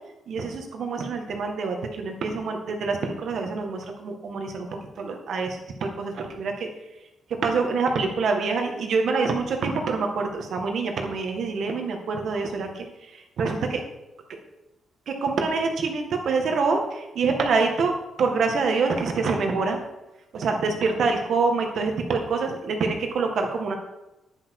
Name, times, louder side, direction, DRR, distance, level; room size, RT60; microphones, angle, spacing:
voice 1, 0.3-4.7 5.0-6.7 7.4-12.8 13.4-13.8 15.1-19.8 20.3-23.7, right 4 dB, 60° right, 3 dB, 1.9 m, -26 dB
10.5 x 10.0 x 4.8 m, 0.96 s
cardioid pair, 140°, 0 cm